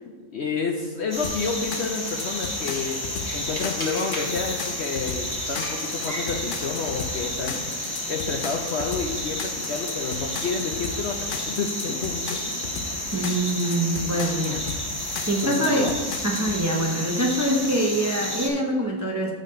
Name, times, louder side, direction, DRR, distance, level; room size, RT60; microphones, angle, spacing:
voice 1, 0.3-3.0 3.3-7.6 8.1-12.4 15.2-16.0, left 4 dB, 60° left, 2 dB, 0.7 m, -30 dB
sound 1, 1.1-18.5, left 1 dB, 15° left, 1.1 m, -31 dB
sound 2, 1.2-16.6, left 6 dB, 90° left, 0.4 m, -36 dB
voice 2, 13.1-14.6 15.3-15.9 16.2-19.3, right 1 dB, 15° right, -1 dB, 0.6 m, -24 dB
7.0 x 4.0 x 6.4 m, 1.4 s
omnidirectional pair, 1.6 m